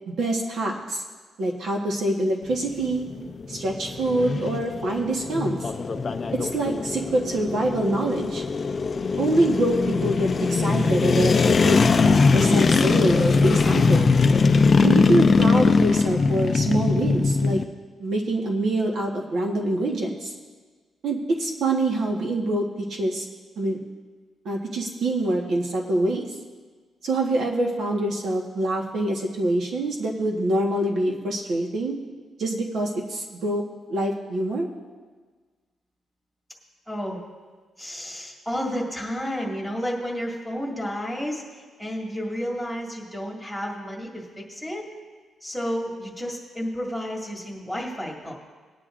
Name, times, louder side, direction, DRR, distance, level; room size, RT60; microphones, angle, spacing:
voice 1, 0.1-1.0 1.4-3.0 3.5-5.6 6.3-8.4 9.2-14.1 14.8-17.6 18.0-20.3 21.0-23.2 23.6-23.8 24.4-26.3 27.0-32.0 32.4-33.6 33.9-34.7, right 1 dB, 60° right, 0 dB, 1.3 m, -25 dB
sound 1, 2.4-17.6, left 4 dB, 35° left, 0.5 m, -21 dB
voice 2, 36.9-37.2 37.8-44.9 45.4-48.3, equal, 5° right, -3 dB, 2.0 m, -31 dB
19.5 x 9.7 x 2.5 m, 1.4 s
cardioid pair, 145°, 0 cm